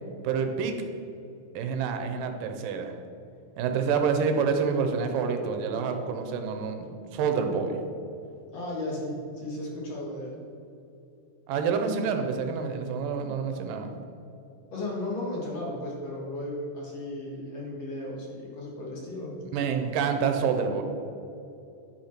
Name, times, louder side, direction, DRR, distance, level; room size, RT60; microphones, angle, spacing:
voice 1, 0.2-0.7 1.6-2.9 3.6-7.8 11.5-13.9 19.5-20.8, right 6 dB, 80° right, 5 dB, 2.4 m, -27 dB
voice 2, 8.5-10.4 14.7-19.3, left 1 dB, 55° left, -4 dB, 2.8 m, -35 dB
11.0 x 5.9 x 5.9 m, 2.8 s
omnidirectional pair, 3.9 m